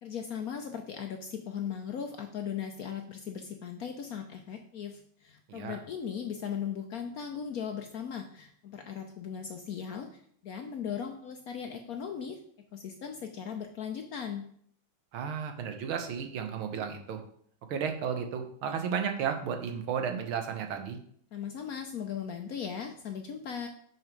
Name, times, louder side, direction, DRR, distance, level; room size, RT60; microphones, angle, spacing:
voice 1, 0.0-12.4 12.7-14.4 21.3-23.7, left 7 dB, 65° left, 5 dB, 0.9 m, -38 dB
voice 2, 15.1-17.2 17.7-21.0, right 7 dB, 85° right, 6 dB, 1.8 m, -33 dB
6.4 x 6.0 x 5.2 m, 0.63 s
omnidirectional pair, 2.2 m